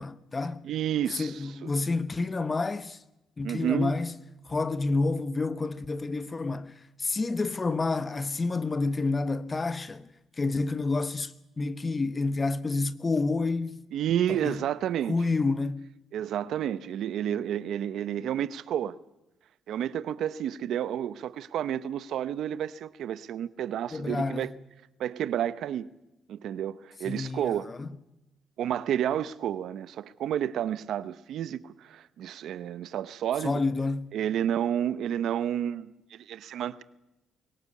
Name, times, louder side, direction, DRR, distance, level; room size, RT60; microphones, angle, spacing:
voice 1, 0.0-0.6 1.1-3.0 3.4-4.1 4.5-6.7 7.0-10.1 10.4-13.8 14.3-14.6 15.1-15.9 23.9-24.5 27.1-27.9 33.4-34.1, left 3 dB, 30° left, 1.2 m, -29 dB
voice 2, 0.6-1.7 3.4-3.9 13.9-15.2 16.1-18.9 19.7-24.5 25.0-25.9 26.3-27.7 28.6-33.6 34.1-36.8, right 10 dB, 75° right, 0.9 m, -30 dB
22.0 x 18.5 x 8.5 m
cardioid pair, 90°, 0 cm